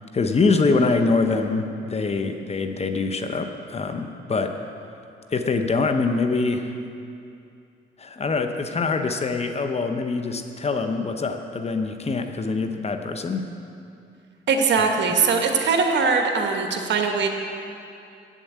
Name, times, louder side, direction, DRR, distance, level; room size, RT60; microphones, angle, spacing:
voice 1, 0.1-4.6 5.3-6.8 8.0-13.5 14.8-15.2, left 3 dB, 30° left, 7 dB, 0.8 m, -24 dB
voice 2, 14.5-17.3, right 5 dB, 65° right, 3 dB, 1.3 m, -21 dB
8.4 x 7.4 x 8.1 m, 2.5 s
cardioid pair, 90°, 20 cm